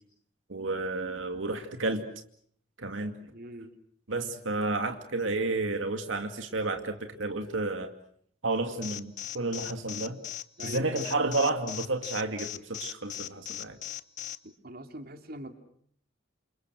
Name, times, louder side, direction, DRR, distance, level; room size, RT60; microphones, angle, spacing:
voice 1, 0.5-2.0 2.8-3.1 4.1-7.9 8.4-10.2 10.6-13.8, right 2 dB, 80° right, 6 dB, 2.4 m, -31 dB
voice 2, 3.2-3.7 10.6-11.1 14.4-15.5, right 1 dB, 50° right, 7 dB, 2.9 m, -43 dB
Alarm, 8.8-14.4, left 12 dB, 40° left, 1.1 m, -38 dB
29.0 x 28.5 x 6.4 m, 0.64 s
head